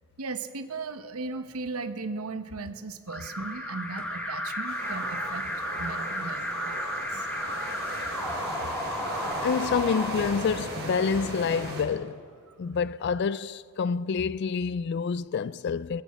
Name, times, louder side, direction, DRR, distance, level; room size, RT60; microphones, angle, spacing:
voice 1, 0.2-7.3, right 3 dB, 85° right, 0.9 m, -37 dB
Alarm, 3.1-11.0, left 1 dB, 5° left, 1.8 m, -34 dB
sound 1, 4.7-11.8, right 1 dB, 50° right, 5.1 m, -38 dB
sound 2, 4.7-9.5, right 2 dB, 65° right, 1.8 m, -41 dB
voice 2, 9.4-12.2 12.6-16.0, left 6 dB, 50° left, 0.3 m, -28 dB
21.0 x 15.0 x 4.3 m
head